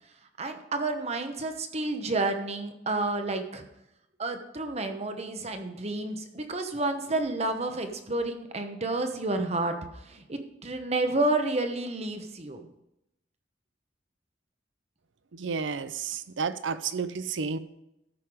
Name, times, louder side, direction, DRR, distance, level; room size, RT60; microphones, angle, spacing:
voice 1, 0.4-3.6 4.2-12.7, right 2 dB, 35° right, 6 dB, 1.0 m, -30 dB
voice 2, 15.3-17.6, right 5 dB, 75° right, 13 dB, 0.6 m, -31 dB
13.5 x 5.8 x 4.9 m, 0.85 s
head